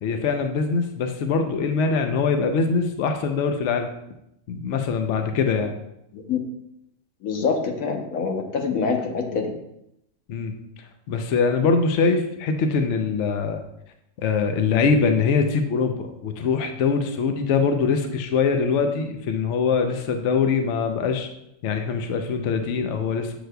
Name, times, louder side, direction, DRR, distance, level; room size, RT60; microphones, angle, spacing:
voice 1, 0.0-3.9 4.5-5.7 10.3-10.5 11.1-13.6 14.2-21.3 21.6-23.3, left 5 dB, 65° left, 6 dB, 0.9 m, -23 dB
voice 2, 7.2-9.5, left 5 dB, 90° left, 2 dB, 1.3 m, -25 dB
7.8 x 6.6 x 2.2 m, 0.80 s
omnidirectional pair, 1.4 m